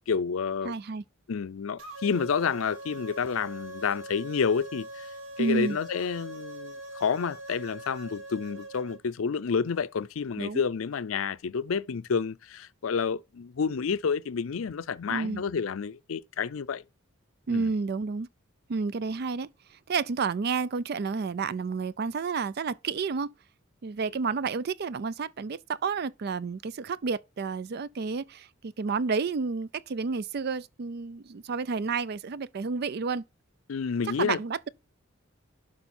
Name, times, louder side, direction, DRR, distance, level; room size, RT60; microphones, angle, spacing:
voice 1, 0.1-0.7 1.3-5.1 5.4-16.8 17.5-17.7 33.7-34.4, left 6 dB, 90° left, 0.5 m, -29 dB
voice 2, 0.6-1.0 5.4-5.8 10.4-10.7 15.1-15.4 17.5-18.3 18.7-19.5 19.9-23.3 23.8-33.2 34.2-34.7, right 4 dB, 50° right, 0.4 m, -30 dB
sound 1, 1.8-9.0, right 1 dB, 75° right, 2.2 m, -42 dB
11.5 x 4.8 x 4.3 m
head